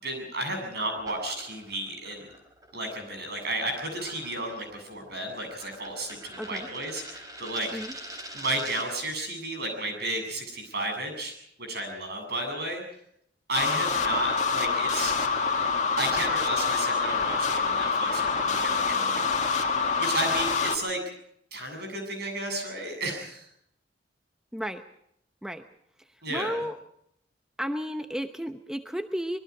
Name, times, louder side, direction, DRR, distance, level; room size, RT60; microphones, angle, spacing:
voice 1, 0.0-2.3 2.7-7.7 8.3-11.3 11.7-12.8 13.5-15.2 16.0-19.5 20.0-21.0 21.5-23.5 26.2-26.5, right 1 dB, 60° right, 4 dB, 7.9 m, -33 dB
sound 1, 1.0-9.0, right 1 dB, 20° right, 4.3 m, -45 dB
sound 2, 13.5-20.8, left 5 dB, 40° left, 2.0 m, -26 dB
voice 2, 24.5-24.8 25.4-25.6 26.3-26.8 27.6-29.4, equal, 5° right, 7 dB, 0.8 m, -32 dB
25.5 x 22.0 x 4.9 m, 0.73 s
head